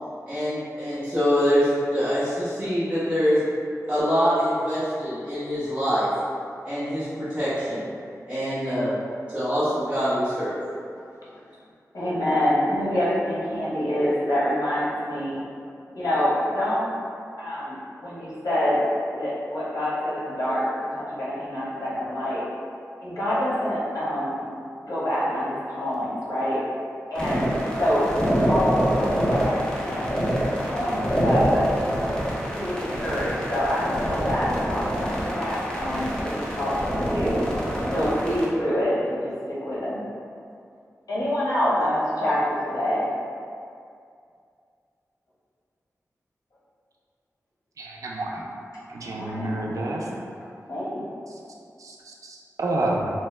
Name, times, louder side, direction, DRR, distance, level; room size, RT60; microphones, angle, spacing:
voice 1, 0.3-3.4 3.9-6.1 6.6-7.9 8.3-8.9 9.3-10.6, equal, 25° right, -14 dB, 0.8 m, -24 dB
voice 2, 11.9-15.4 15.9-16.9 17.4-18.8 19.1-22.4 23.0-24.4 24.8-26.6 27.1-27.5 27.8-28.0 28.4-30.4 30.7-31.7 32.5-37.4 37.9-40.0 41.1-43.1 49.0-50.2 50.7-51.0, left 1 dB, 90° left, -8 dB, 0.8 m, -26 dB
sound 1, 27.1-38.4, equal, 15° left, 0.6 m, -26 dB
voice 3, 47.8-48.5 48.9-50.1 51.3-51.4 51.8-53.1, right 2 dB, 70° right, -2 dB, 0.4 m, -29 dB
2.8 x 2.2 x 3.1 m, 2.4 s
wide cardioid pair, 95°, 6 cm